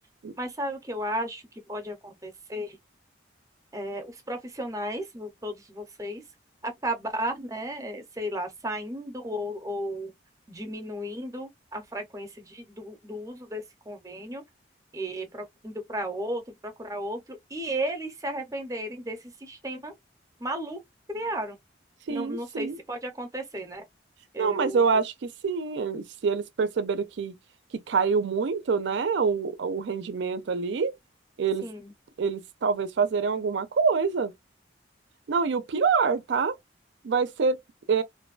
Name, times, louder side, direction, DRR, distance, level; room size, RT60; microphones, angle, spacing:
voice 1, 0.4-1.4 1.7-2.8 3.7-6.2 6.6-10.1 10.5-14.4 14.9-19.9 20.4-20.8 21.1-21.6 22.1-23.8 24.3-24.9 31.6-31.9, right 1 dB, 15° right, 0.6 m, -34 dB
voice 2, 22.1-22.8 24.4-27.3 27.7-30.9 31.4-31.6 32.2-34.3 35.3-36.5 37.0-37.6 37.9-38.0, right 5 dB, 65° right, 0.4 m, -26 dB
2.5 x 2.2 x 2.3 m
head